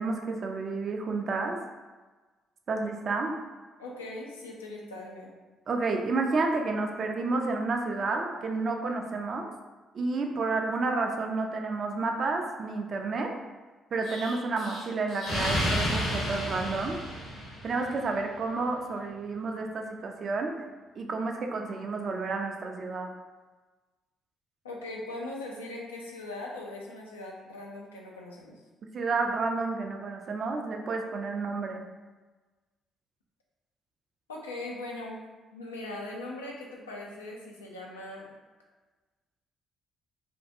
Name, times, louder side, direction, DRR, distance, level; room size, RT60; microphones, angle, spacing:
voice 1, 0.0-1.6 2.7-3.4 5.7-9.5 9.9-13.3 13.9-17.0 17.6-20.5 21.0-23.1 28.9-31.8, right 3 dB, 50° right, 3 dB, 0.4 m, -30 dB
voice 2, 3.8-5.3 24.6-28.6 34.3-35.2 35.5-38.3, left 2 dB, 90° left, -2 dB, 0.4 m, -40 dB
Explosion, 14.0-17.9, equal, 60° left, 0.9 m, -31 dB
2.6 x 2.2 x 2.6 m, 1.3 s
hypercardioid pair, 45°, 0 cm